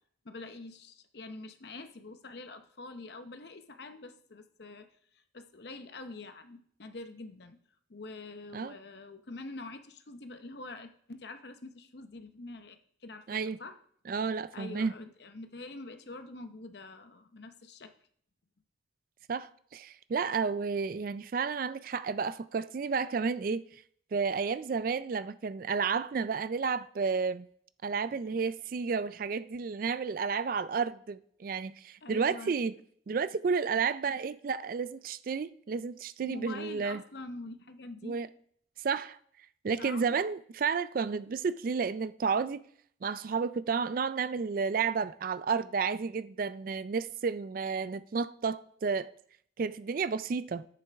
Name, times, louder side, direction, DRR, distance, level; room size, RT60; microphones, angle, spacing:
voice 1, 0.2-4.9 5.3-7.6 7.9-13.8 14.5-17.9 32.0-32.5 36.2-38.2 39.8-40.2, left 2 dB, 60° left, 0.8 m, -45 dB
voice 2, 14.1-14.9 19.3-23.6 24.1-27.5 27.8-32.7 33.1-37.0 38.0-38.3 38.8-39.2 39.6-42.6 43.0-49.1 49.6-50.7, right 5 dB, 45° right, 0.3 m, -31 dB
10.0 x 8.5 x 3.5 m
head